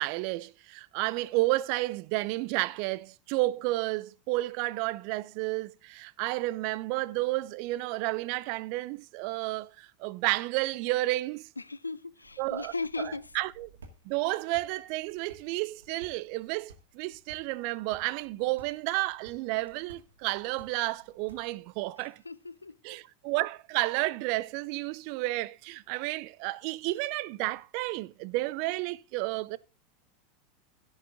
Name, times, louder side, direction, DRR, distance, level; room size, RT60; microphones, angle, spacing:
voice 1, 0.0-11.5 12.4-13.7 14.1-22.2 22.8-29.6, right 20 dB, 55° right, 0.5 m, -31 dB
voice 2, 11.6-13.2 22.2-22.8, left 3 dB, 90° left, 0.4 m, -37 dB
sound 1, 12.2-21.8, right 3 dB, 80° right, 2.1 m, -57 dB
15.5 x 6.4 x 3.7 m
figure-of-eight pair, 85°, 0 cm